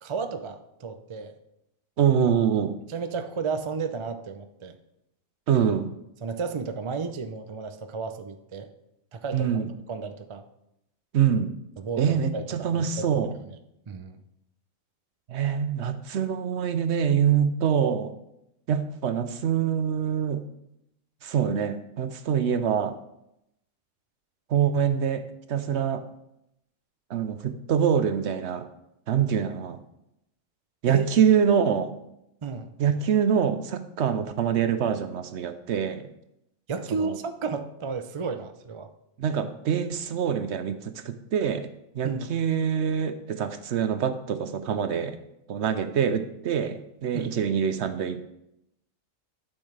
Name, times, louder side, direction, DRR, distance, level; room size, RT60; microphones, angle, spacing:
voice 1, 0.0-1.3 2.9-4.8 6.2-8.7 9.1-9.6 9.9-10.4 11.8-13.1 13.4-13.6 13.9-14.2 30.9-31.1 32.4-32.7 36.7-38.9 42.0-42.3 47.1-47.4, right 5 dB, 45° right, 9 dB, 0.4 m, -33 dB
voice 2, 2.0-2.7 5.5-5.9 9.3-9.7 11.1-11.5 12.0-13.3 15.3-18.1 18.7-20.4 21.2-23.0 24.5-26.0 27.1-28.6 29.1-29.8 30.8-31.9 32.8-36.1 36.9-37.2 39.2-41.7 41.9-45.2 45.5-48.3, right 8 dB, 65° right, 9 dB, 0.9 m, -25 dB
12.0 x 6.3 x 3.3 m, 0.82 s
omnidirectional pair, 1.4 m